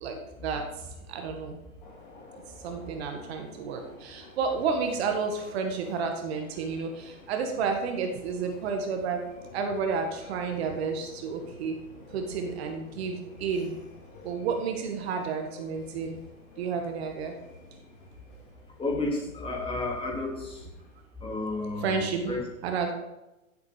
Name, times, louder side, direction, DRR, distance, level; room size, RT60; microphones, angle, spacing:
voice 1, 0.0-1.6 2.6-9.2 9.5-11.8 12.1-13.8 14.2-16.2 16.6-17.4 21.8-22.9, right 5 dB, 45° right, 4 dB, 1.9 m, -31 dB
sound 1, 1.8-21.0, left 2 dB, 40° left, 3.9 m, -50 dB
voice 2, 18.8-20.7 21.2-22.4, left 2 dB, 10° left, -1 dB, 3.3 m, -32 dB
15.0 x 8.1 x 5.2 m, 0.99 s
hypercardioid pair, 120°, 43 cm